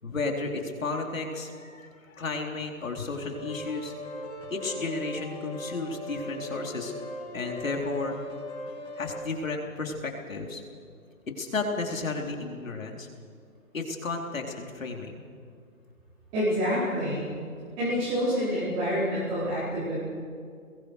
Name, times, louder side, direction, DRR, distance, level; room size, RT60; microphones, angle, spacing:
voice 1, 0.0-3.9 4.5-6.9 7.3-8.2 9.0-10.6 11.4-13.1 13.7-15.2, left 3 dB, 65° left, 1 dB, 3.9 m, -33 dB
sound 1, 3.3-9.2, left 1 dB, 15° left, 5.9 m, -39 dB
voice 2, 16.3-17.3 17.8-20.0, equal, 10° right, -12 dB, 4.7 m, -27 dB
30.0 x 21.5 x 4.9 m, 2.3 s
hypercardioid pair, 170°, 42 cm